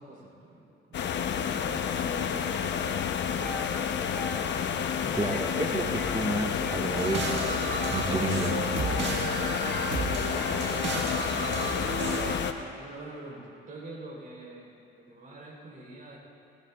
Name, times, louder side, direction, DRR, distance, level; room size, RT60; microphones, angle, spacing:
voice 1, 0.0-2.9 10.4-10.9 12.8-16.2, right 2 dB, 45° right, -2 dB, 4.3 m, -46 dB
sound 1, 0.9-12.5, left 7 dB, 65° left, 0.9 m, -30 dB
sound 2, 3.3-3.7 4.0-4.4 5.2-5.6 5.8-6.2 6.5-8.0 8.8-9.9 10.2-11.2, left 1 dB, 10° left, 2.2 m, -41 dB
voice 2, 5.1-7.6 7.9-8.6, right 1 dB, 20° right, 1 dB, 1.8 m, -30 dB
sound 3, 7.0-12.4, right 3 dB, 65° right, 1.7 m, -33 dB
21.5 x 19.5 x 2.5 m, 2.7 s
cardioid pair, 90°, 20 cm